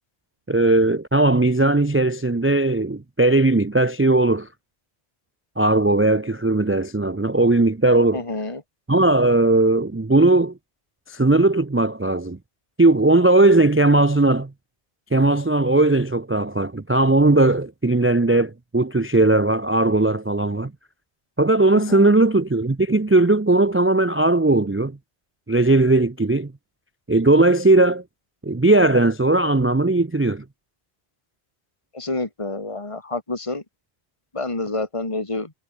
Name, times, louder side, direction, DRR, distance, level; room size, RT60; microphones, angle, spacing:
voice 1, 0.5-4.5 5.6-8.2 8.9-10.5 11.1-12.4 12.8-14.5 15.1-20.7 21.4-24.9 25.5-26.5 27.1-28.0 28.4-30.4, right 2 dB, 20° right, 0.4 m, -18 dB
voice 2, 8.1-8.6 21.7-22.1 31.9-33.6 34.3-35.5, left 2 dB, 30° left, 2.6 m, -28 dB
omnidirectional pair, 1.1 m